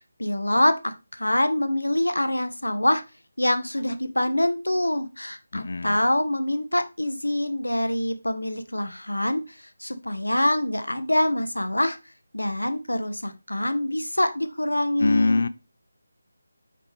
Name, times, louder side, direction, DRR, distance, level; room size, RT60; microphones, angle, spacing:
voice 1, 0.2-3.0 3.4-12.0 12.3-15.5, left 1 dB, 80° left, 0.9 m, -25 dB
voice 2, 5.5-6.0 15.0-15.5, left 3 dB, 55° left, 0.4 m, -23 dB
5.9 x 4.8 x 3.4 m
figure-of-eight pair, 160°, 0 cm